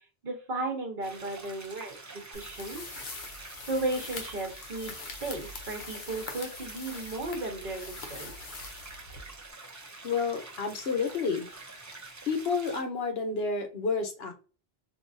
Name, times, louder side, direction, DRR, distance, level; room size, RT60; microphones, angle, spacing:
voice 1, 0.2-2.8 3.7-8.6, right 2 dB, 55° right, 2 dB, 1.1 m, -35 dB
sound 1, 1.0-12.8, right 3 dB, 20° right, 0.5 m, -47 dB
sound 2, 2.3-9.5, left 3 dB, 55° left, 0.9 m, -43 dB
voice 2, 10.0-11.5 12.3-14.3, left 4 dB, 75° left, 5 dB, 1.0 m, -30 dB
3.8 x 2.7 x 2.6 m, 0.35 s
omnidirectional pair, 1.0 m